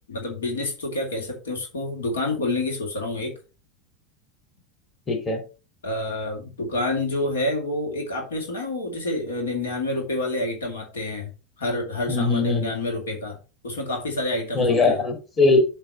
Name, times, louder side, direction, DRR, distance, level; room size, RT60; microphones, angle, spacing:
voice 1, 0.1-3.3 5.8-11.3 11.6-13.4 13.6-15.0, left 2 dB, 70° left, 2 dB, 2.5 m, -28 dB
voice 2, 5.1-5.4 12.1-12.6 14.5-15.6, left 3 dB, 25° left, 2 dB, 2.8 m, -20 dB
7.7 x 3.5 x 6.4 m, 0.33 s
figure-of-eight pair, 85°, 0 cm